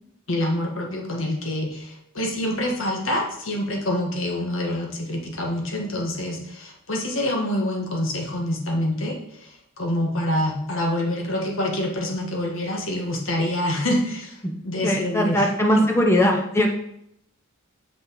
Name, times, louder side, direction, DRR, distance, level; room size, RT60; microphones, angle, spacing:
voice 1, 0.3-14.4 14.6-15.5 15.7-15.9, left 1 dB, 70° left, 1 dB, 1.7 m, -26 dB
voice 2, 14.8-16.7, equal, 15° left, 1 dB, 0.8 m, -20 dB
7.1 x 6.3 x 4.7 m, 0.76 s
head